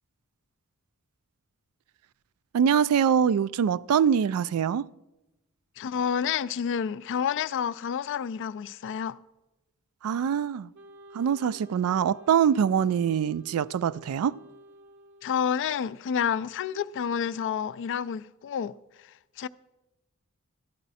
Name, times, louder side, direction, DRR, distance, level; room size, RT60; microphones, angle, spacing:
voice 1, 2.5-4.9 10.0-10.7 11.1-14.4, right 8 dB, 75° right, 0.3 m, -24 dB
voice 2, 5.8-9.2 15.2-19.5, left 7 dB, 55° left, 0.3 m, -29 dB
Wind instrument woodwind instrument, 10.7-15.9, equal, 55° right, 0.8 m, -51 dB
14.0 x 11.0 x 4.1 m
head